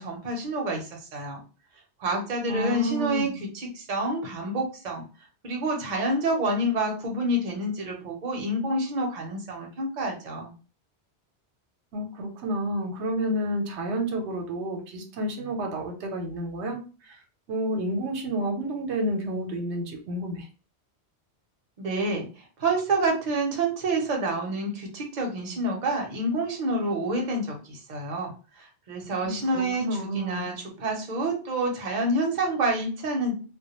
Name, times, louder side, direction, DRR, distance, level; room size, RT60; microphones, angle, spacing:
voice 1, 0.0-1.4 2.0-5.0 5.4-10.5 21.8-22.3 22.6-29.9 30.1-33.4, right 1 dB, 45° right, 1 dB, 0.7 m, -28 dB
voice 2, 2.5-3.4 11.9-17.2 17.5-20.5 29.2-30.5, right 1 dB, 80° right, 3 dB, 0.9 m, -30 dB
2.2 x 2.1 x 2.8 m, 0.35 s
omnidirectional pair, 1.1 m